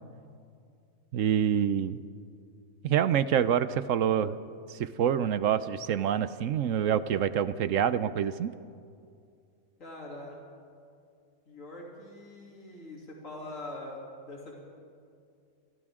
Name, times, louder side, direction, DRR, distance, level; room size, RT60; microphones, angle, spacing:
voice 1, 1.1-2.0 2.8-4.4 4.7-8.5, right 9 dB, 65° right, 14 dB, 1.0 m, -26 dB
voice 2, 9.8-10.4 11.5-14.6, left 2 dB, 60° left, -3 dB, 3.5 m, -43 dB
29.0 x 25.0 x 3.7 m, 2.3 s
omnidirectional pair, 1.5 m